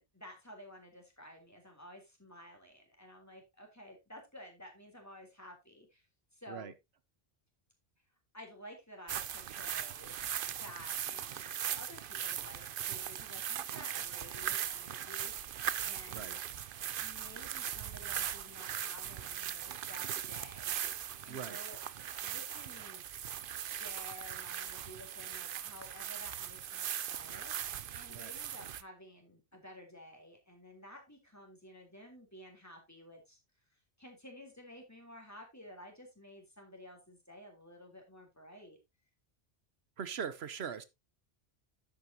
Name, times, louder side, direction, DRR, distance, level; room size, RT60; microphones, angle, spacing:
voice 1, 0.0-6.0 6.3-6.7 8.3-10.2 10.5-16.4 17.0-21.8 22.2-23.0 23.5-33.4 34.0-38.8, equal, 15° left, 3.5 m, -53 dB
sound 1, 9.1-28.8, right 9 dB, 60° right, 0.8 m, -39 dB
voice 2, 21.3-21.6 28.1-28.3 40.0-40.8, right 7 dB, 75° right, 1.1 m, -41 dB
11.0 x 8.8 x 2.8 m
omnidirectional pair, 1.1 m